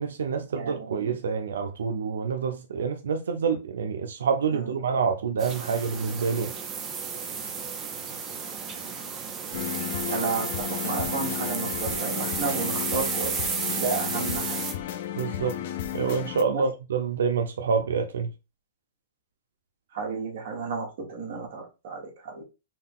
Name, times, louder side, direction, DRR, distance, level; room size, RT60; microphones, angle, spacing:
voice 1, 0.0-6.5 15.2-15.6 15.9-18.3, right 6 dB, 90° right, 0.5 m, -27 dB
voice 2, 0.5-1.2 4.5-4.9 10.1-13.4 13.7-14.6 16.4-16.6 19.9-22.4, right 5 dB, 50° right, 1.5 m, -32 dB
sound 1, 5.4-14.7, right 6 dB, 20° right, 0.7 m, -32 dB
sound 2, 9.5-16.4, left 10 dB, 50° left, 0.5 m, -33 dB
3.8 x 2.3 x 3.6 m
hypercardioid pair, 160°, 0 cm